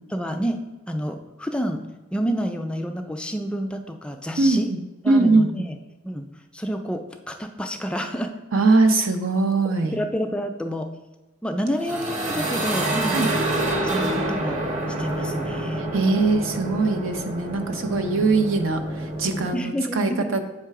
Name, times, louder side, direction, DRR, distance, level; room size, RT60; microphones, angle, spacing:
voice 1, 0.1-1.8 2.1-4.7 5.0-5.8 6.0-6.3 6.5-8.3 9.9-10.9 11.4-13.2 13.8-14.6 15.0-15.8 19.5-20.3, equal, 5° left, 5 dB, 0.3 m, -28 dB
voice 2, 4.4-4.8 5.1-5.6 8.5-10.0 13.1-13.3 15.8-20.4, right 3 dB, 75° right, 6 dB, 0.7 m, -21 dB
sound 1, 11.7-19.5, right 1 dB, 40° right, 0.8 m, -27 dB
7.5 x 3.2 x 4.7 m, 1.1 s
head